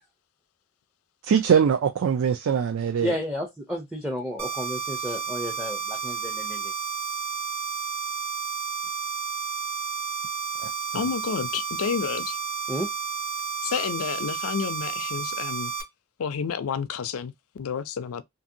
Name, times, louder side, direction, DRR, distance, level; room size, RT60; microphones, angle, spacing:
voice 1, 1.2-3.1 10.6-10.7, right 7 dB, 70° right, 0.3 m, -22 dB
voice 2, 3.0-6.7 12.7-12.9, equal, 5° right, 0.4 m, -32 dB
sound 1, 4.4-15.8, right 6 dB, 45° right, 0.8 m, -31 dB
voice 3, 10.9-12.4 13.6-15.7 16.2-18.2, left 7 dB, 70° left, 0.4 m, -30 dB
2.7 x 2.6 x 2.6 m
head